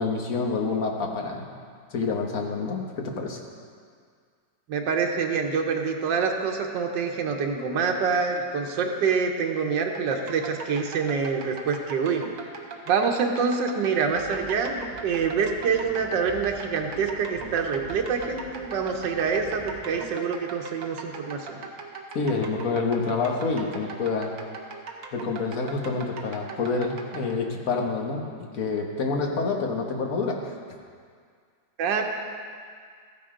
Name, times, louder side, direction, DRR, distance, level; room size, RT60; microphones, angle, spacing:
voice 1, 0.0-1.5 1.9-3.4 22.1-24.3 25.1-30.5, left 4 dB, 55° left, 1 dB, 1.5 m, -27 dB
voice 2, 4.7-12.2 12.9-21.6 31.8-32.0, right 5 dB, 90° right, 2 dB, 1.6 m, -26 dB
sound 1, 9.9-27.3, right 4 dB, 55° right, 1.3 m, -40 dB
sound 2, 14.1-20.0, equal, 20° left, 2.3 m, -46 dB
14.0 x 9.9 x 3.7 m, 2.1 s
omnidirectional pair, 1.9 m